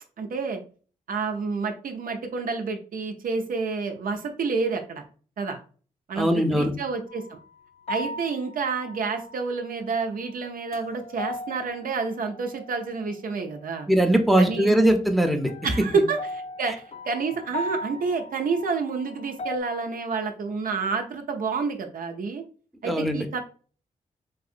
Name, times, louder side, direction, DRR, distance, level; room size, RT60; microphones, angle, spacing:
voice 1, 0.2-0.6 1.1-5.0 5.4-5.6 6.1-7.4 7.9-13.9 14.4-14.7 15.6-16.7 17.1-22.4 22.8-23.4, right 4 dB, 70° right, 5 dB, 0.5 m, -29 dB
voice 2, 6.1-6.7 13.9-15.5 15.9-16.0 16.7-16.8 22.8-23.3, right 1 dB, ahead, 4 dB, 0.7 m, -21 dB
sound 1, 7.1-7.4 7.9-9.7 10.2-13.1 15.5-19.6, left 1 dB, 45° left, 0.4 m, -38 dB
4.0 x 2.6 x 2.5 m, 0.39 s
cardioid pair, 55°, 15 cm